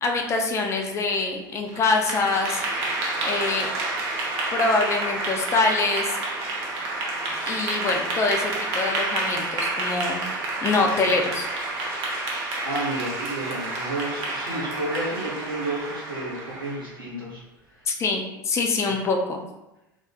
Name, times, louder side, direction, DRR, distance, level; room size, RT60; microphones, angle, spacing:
voice 1, 0.0-2.6 3.0-3.7 4.5-6.2 7.5-10.3 10.6-11.5 17.9-19.4, left 3 dB, 25° left, 2 dB, 0.4 m, -24 dB
Clapping / Applause, 1.7-16.9, right 2 dB, 45° right, 0.6 m, -29 dB
voice 2, 12.6-17.4, right 2 dB, 90° right, -7 dB, 0.8 m, -31 dB
2.4 x 2.3 x 2.2 m, 0.94 s
figure-of-eight pair, 75°, 11 cm